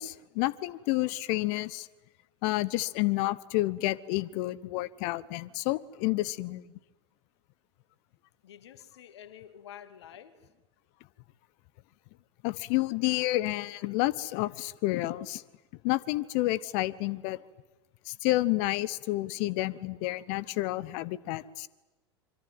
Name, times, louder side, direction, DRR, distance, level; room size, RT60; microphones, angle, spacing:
voice 1, 0.0-1.9 2.4-6.6 12.4-15.4 15.8-17.4 18.1-21.7, left 18 dB, 50° left, 1.0 m, -30 dB
voice 2, 8.4-10.5, left 10 dB, 70° left, 2.3 m, -49 dB
25.5 x 24.5 x 9.4 m
figure-of-eight pair, 85°, 15 cm